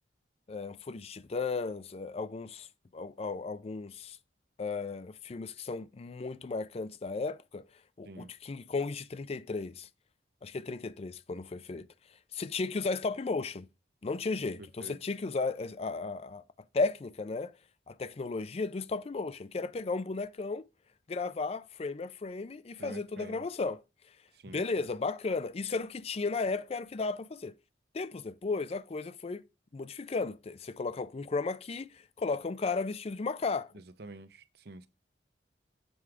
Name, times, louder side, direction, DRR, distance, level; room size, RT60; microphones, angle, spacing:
voice 1, 0.5-2.7 2.9-4.2 4.6-7.6 8.0-9.9 10.4-11.9 12.3-13.7 14.0-16.4 16.7-17.5 17.9-20.6 21.1-23.8 24.5-27.5 27.9-29.5 29.7-33.7, left 4 dB, 35° left, 0.4 m, -34 dB
voice 2, 14.6-15.0 22.8-23.4 24.3-24.9 33.7-34.9, right 2 dB, 60° right, 0.7 m, -48 dB
7.8 x 4.7 x 4.9 m
head